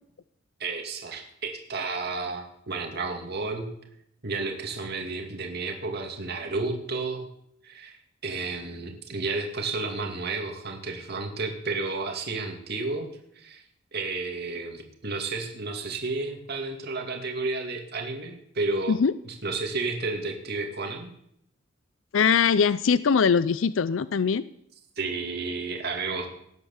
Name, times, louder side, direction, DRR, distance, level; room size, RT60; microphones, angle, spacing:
voice 1, 0.6-3.7 4.2-7.3 7.6-13.1 13.4-13.6 13.9-18.9 19.2-21.1 25.0-26.3, right 3 dB, 55° right, 2 dB, 2.3 m, -32 dB
voice 2, 22.1-24.4, left 6 dB, 80° left, 16 dB, 0.5 m, -22 dB
18.0 x 9.2 x 7.2 m, 0.72 s
head